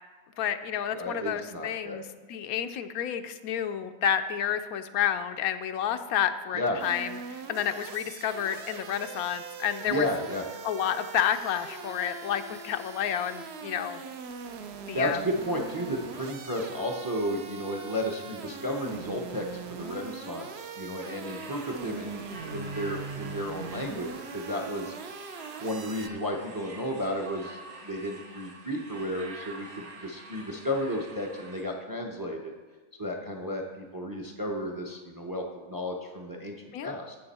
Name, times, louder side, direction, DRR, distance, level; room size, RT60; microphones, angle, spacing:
voice 1, 0.4-10.1 10.6-14.0 14.9-15.2 36.7-36.9, left 9 dB, 90° left, 9 dB, 1.1 m, -30 dB
voice 2, 0.9-2.0 6.5-6.8 9.9-10.4 14.9-24.9 25.6-32.5 33.0-36.6 36.8-37.2, equal, 20° right, 3 dB, 0.6 m, -33 dB
sound 1, 6.8-26.1, right 5 dB, 55° right, 0.8 m, -41 dB
sound 2, 21.2-31.6, right 3 dB, 80° right, 1.9 m, -47 dB
11.5 x 7.8 x 4.2 m, 1.3 s
omnidirectional pair, 1.5 m